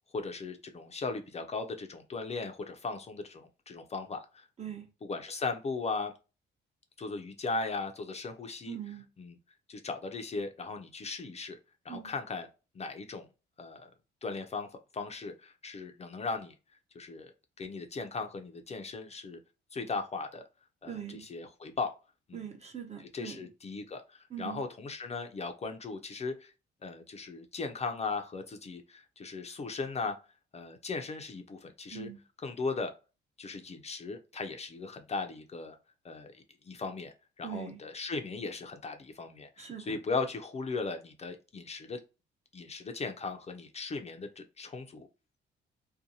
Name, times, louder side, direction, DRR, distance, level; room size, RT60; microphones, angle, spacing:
voice 1, 0.1-4.5 5.0-6.1 7.0-8.8 9.2-9.4 9.7-11.6 11.8-12.5 12.7-13.3 13.6-13.9 14.2-14.7 14.9-16.5 16.9-17.3 17.6-19.4 19.7-20.4 20.8-21.9 22.3-22.4 23.0-26.5 26.8-30.2 30.5-32.1 32.4-32.9 33.4-35.8 36.0-36.3 36.6-42.0 42.5-45.1, left 4 dB, 35° left, 0.5 m, -37 dB
voice 2, 8.7-9.0 11.9-12.1 20.9-21.2 22.3-23.4 24.3-24.6 31.9-32.2 37.4-37.8 39.6-40.0, right 9 dB, 35° right, 0.8 m, -41 dB
2.6 x 2.2 x 2.7 m
cardioid pair, 90°, 20 cm